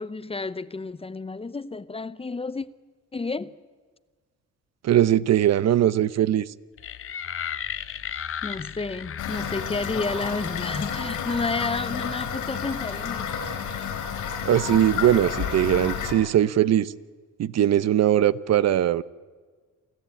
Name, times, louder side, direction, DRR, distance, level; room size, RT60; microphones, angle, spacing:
voice 1, 0.0-2.7 3.1-3.5 8.1-13.3, left 3 dB, 20° left, 0.7 m, -31 dB
voice 2, 4.8-6.5 14.4-16.9 17.4-19.0, right 11 dB, 60° right, 0.7 m, -20 dB
sound 1, 6.8-12.1, left 8 dB, 45° left, 0.9 m, -36 dB
Toilet flush / Fill (with liquid), 9.2-16.1, left 7 dB, 90° left, 4.4 m, -31 dB
28.0 x 14.0 x 8.9 m
cardioid pair, 90°, 30 cm